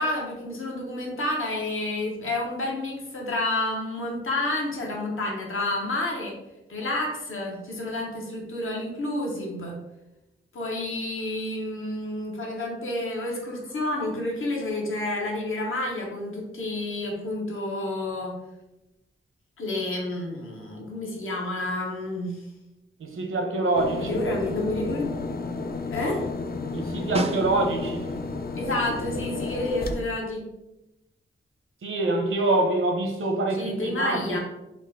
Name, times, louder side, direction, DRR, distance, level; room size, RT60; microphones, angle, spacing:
voice 1, 0.0-6.4 6.7-9.7 10.5-18.3 19.6-22.4 24.0-25.2 25.9-26.2 28.5-30.4 33.5-34.4, left 2 dB, 75° left, -1 dB, 1.0 m, -29 dB
voice 2, 23.0-24.2 26.7-28.1 31.8-34.4, right 2 dB, 75° right, 3 dB, 0.8 m, -25 dB
sound 1, 23.7-30.0, left 3 dB, 50° left, 0.4 m, -32 dB
Snare drum, 27.1-28.1 32.5-32.6, right 2 dB, 30° right, 0.4 m, -30 dB
3.7 x 2.5 x 3.6 m, 0.95 s
cardioid pair, 70°, 21 cm